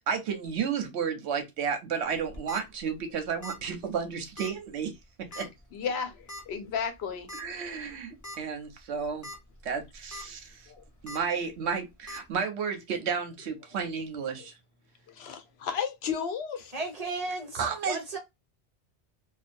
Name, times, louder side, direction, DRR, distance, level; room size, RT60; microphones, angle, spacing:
voice 1, 0.0-4.9 5.4-5.5 7.4-9.3 9.6-10.7 11.0-14.5 17.6-18.0, right 6 dB, 75° right, 0.9 m, -32 dB
sound 1, 2.2-2.6 3.4-3.7 3.9-4.0 4.4-4.5 5.3-5.6 6.3-6.4 7.3-7.4 7.9-8.0 8.2-8.4 9.0-9.4 9.8-10.2 11.1-11.2 12.1-12.2, left 1 dB, 20° left, 0.7 m, -41 dB
voice 2, 5.3-7.3 10.7-10.8 14.4-14.5 15.1-16.7, left 7 dB, 75° left, 0.8 m, -34 dB
voice 3, 16.7-18.2, right 3 dB, 40° right, 0.9 m, -35 dB
2.6 x 2.2 x 2.5 m
omnidirectional pair, 1.1 m